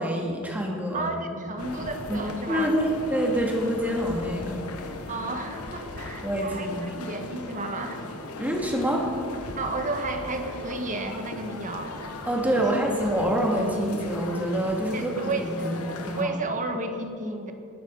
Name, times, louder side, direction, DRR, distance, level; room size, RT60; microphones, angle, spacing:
voice 1, 0.0-1.4 2.1-4.6 6.2-6.8 8.4-9.1 12.3-16.3, equal, 5° right, -1 dB, 2.3 m, -26 dB
voice 2, 0.9-2.8 5.1-8.1 9.6-12.0 14.9-15.7 16.2-17.5, right 2 dB, 35° right, 5 dB, 1.4 m, -32 dB
sound 1, 1.6-16.2, left 2 dB, 90° left, 1.2 m, -38 dB
20.0 x 9.5 x 5.4 m, 2.6 s
head